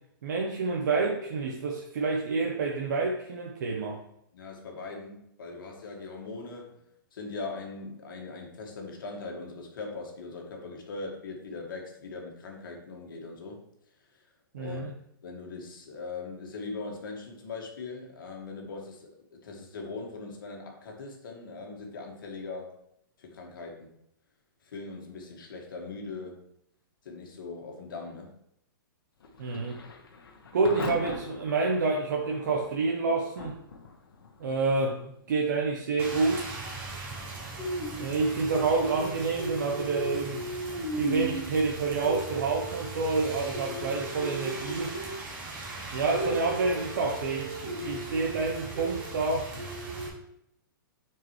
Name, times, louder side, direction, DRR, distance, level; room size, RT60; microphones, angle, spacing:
voice 1, 0.2-4.0 14.5-14.9 29.4-29.8 30.5-33.6 34.4-36.6 37.9-40.4 40.9-45.0 45.9-49.5, right 3 dB, 55° right, 0 dB, 0.9 m, -28 dB
voice 2, 4.3-6.8 7.1-13.6 14.5-14.8 15.2-22.8 23.2-23.9 24.7-26.4 27.1-28.3, left 3 dB, 70° left, 1 dB, 1.7 m, -40 dB
Thunder / Rain, 29.2-45.9, left 4 dB, 90° left, 1.2 m, -47 dB
Rain, 36.0-50.1, right 2 dB, 15° right, 0.8 m, -36 dB
9.4 x 4.7 x 3.1 m, 0.75 s
hypercardioid pair, 180°, 12 cm